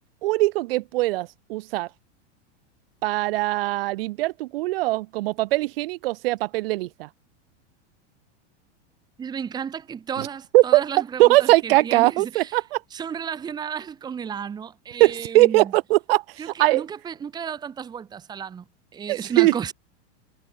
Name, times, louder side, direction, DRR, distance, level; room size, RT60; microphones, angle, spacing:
voice 1, 0.2-1.9 3.0-7.1 10.2-10.3 10.5-10.8 11.2-12.8 15.0-16.2 16.6-16.8 19.1-19.5, right 19 dB, 50° right, 1.7 m, -20 dB
voice 2, 9.2-12.5 12.9-15.7 16.4-18.6 18.9-19.7, right 7 dB, 10° right, 1.5 m, -33 dB
supercardioid pair, 175°, 37 cm